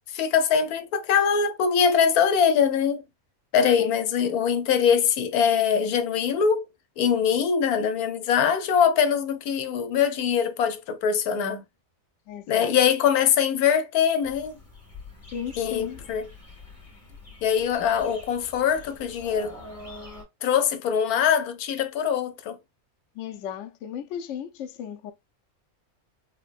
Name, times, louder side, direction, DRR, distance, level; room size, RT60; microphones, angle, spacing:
voice 1, 0.1-3.0 3.5-6.7 7.0-11.6 12.5-14.5 15.6-16.3 17.4-19.5 20.4-22.6, left 7 dB, 90° left, 1.2 m, -23 dB
voice 2, 12.3-12.7 15.3-16.1 23.1-25.1, left 8 dB, 65° left, 0.8 m, -35 dB
sound 1, 14.2-20.2, left 2 dB, 25° left, 1.5 m, -45 dB
4.6 x 2.2 x 2.4 m
omnidirectional pair, 1.5 m